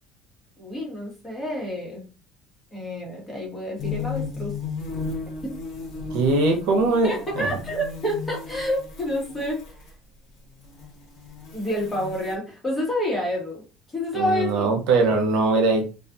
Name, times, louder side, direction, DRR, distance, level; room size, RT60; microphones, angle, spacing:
voice 1, 0.6-2.0 2.7-4.5 5.4-5.5 7.0-9.6 11.5-13.6 13.9-14.8, equal, 15° left, -2 dB, 1.1 m, -28 dB
sound 1, 3.8-9.9 10.5-12.4, left 5 dB, 55° left, 1.1 m, -35 dB
voice 2, 6.1-7.6 14.1-15.8, right 3 dB, 75° right, 3 dB, 0.7 m, -21 dB
2.4 x 2.3 x 2.5 m, 0.34 s
cardioid pair, 135°, 0 cm